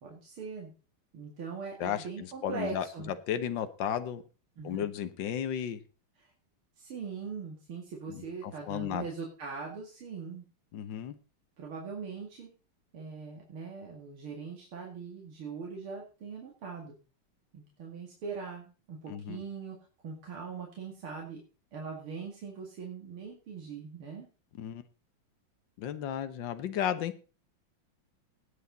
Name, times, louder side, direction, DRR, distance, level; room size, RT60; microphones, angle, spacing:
voice 1, 0.0-0.7 1.1-3.1 4.6-4.9 6.2-6.3 6.8-10.5 11.6-12.5 12.9-16.9 17.5-19.8 20.0-21.4 21.7-24.3, right 5 dB, 90° right, -1 dB, 3.2 m, -41 dB
voice 2, 1.8-4.2 4.6-5.8 8.1-9.1 10.7-11.2 19.1-19.4 24.6-24.8 25.8-27.1, left 9 dB, 65° left, 10 dB, 1.7 m, -34 dB
18.0 x 8.2 x 4.0 m, 0.34 s
omnidirectional pair, 2.3 m